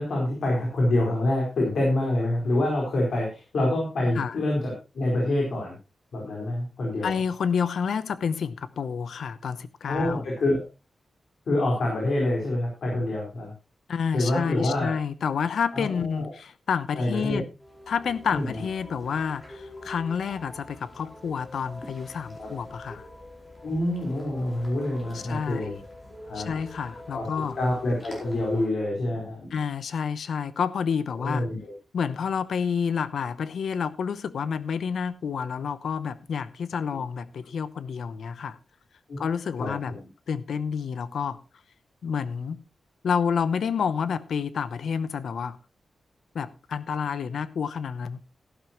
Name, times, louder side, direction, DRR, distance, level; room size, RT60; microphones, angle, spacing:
voice 1, 0.0-5.7 6.1-7.1 9.9-10.6 11.5-13.5 14.1-14.9 15.7-16.3 16.9-17.4 18.3-18.6 22.4-22.5 23.6-25.8 26.3-26.5 27.1-27.3 27.6-29.5 31.1-31.7 39.1-39.2 39.6-40.1, left 1 dB, 70° left, 4.6 m, -26 dB
voice 2, 7.0-10.2 13.9-17.5 17.9-23.1 25.1-25.8 26.3-27.6 29.5-31.5 31.9-38.6 39.2-39.9 40.3-41.4 42.0-42.6 43.0-45.6 46.3-48.2, left 6 dB, 90° left, 0.8 m, -29 dB
sound 1, 17.6-28.7, left 1 dB, 25° left, 4.7 m, -45 dB
14.0 x 12.0 x 3.0 m
wide cardioid pair, 155°, 0 cm